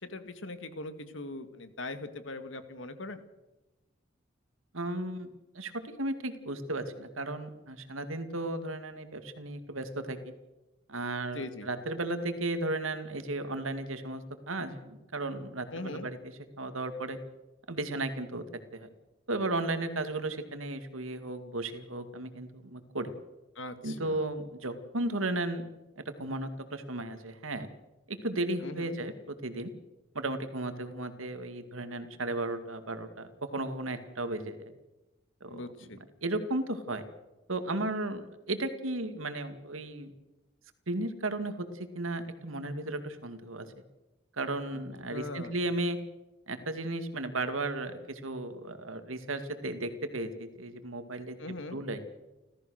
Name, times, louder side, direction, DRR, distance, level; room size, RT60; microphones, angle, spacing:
voice 1, 0.0-3.2 11.3-11.7 15.7-16.1 23.6-24.2 28.6-29.0 35.5-36.0 45.1-45.6 51.4-51.8, left 2 dB, 70° left, 10 dB, 1.9 m, -40 dB
voice 2, 4.7-5.3 5.5-10.3 10.9-17.2 17.7-18.4 18.7-18.9 19.3-23.1 23.8-25.6 26.0-27.7 28.1-29.7 30.1-34.6 35.4-35.6 36.2-37.0 37.5-40.1 40.9-43.7 44.3-46.0 46.5-52.1, right 2 dB, 90° right, 9 dB, 2.2 m, -35 dB
29.5 x 14.0 x 6.5 m, 1.0 s
head